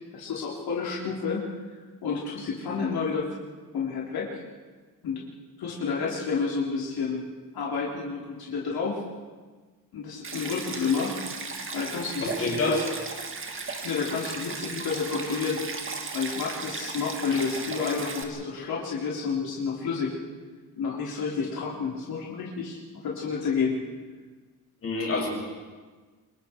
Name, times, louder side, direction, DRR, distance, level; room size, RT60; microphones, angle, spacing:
voice 1, 0.1-1.4 2.0-3.3 3.7-4.4 5.0-5.2 5.6-7.2 7.5-9.0 9.9-11.2 11.4-12.8 13.7-15.6 16.1-20.1 20.8-23.8, left 5 dB, 80° left, -4 dB, 3.9 m, -30 dB
Stream, 10.2-18.2, right 4 dB, 35° right, 1.9 m, -36 dB
voice 2, 12.2-12.9 17.3-17.4 24.8-25.3, left 2 dB, 40° left, -2 dB, 6.6 m, -27 dB
28.0 x 24.0 x 4.6 m, 1.4 s
wide cardioid pair, 170°, 36 cm